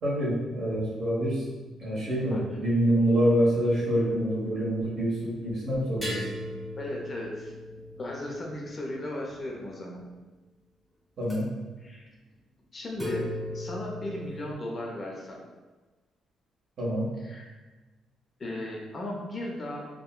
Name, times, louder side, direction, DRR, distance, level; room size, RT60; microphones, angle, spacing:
voice 1, 0.0-1.4 1.8-6.3 11.2-11.5 16.8-17.1, equal, 50° right, -7 dB, 1.1 m, -26 dB
voice 2, 2.3-2.6 6.8-7.5 8.0-10.0 11.8-12.1 12.7-13.3 13.5-15.4 17.2-17.5 18.4-19.9, left 1 dB, 30° left, -1 dB, 0.5 m, -36 dB
sound 1, 3.2-4.4 6.0-9.7 11.2-11.4 13.0-14.5, left 1 dB, 5° right, 0.8 m, -38 dB
3.6 x 2.1 x 2.3 m, 1.2 s
cardioid pair, 140°, 0 cm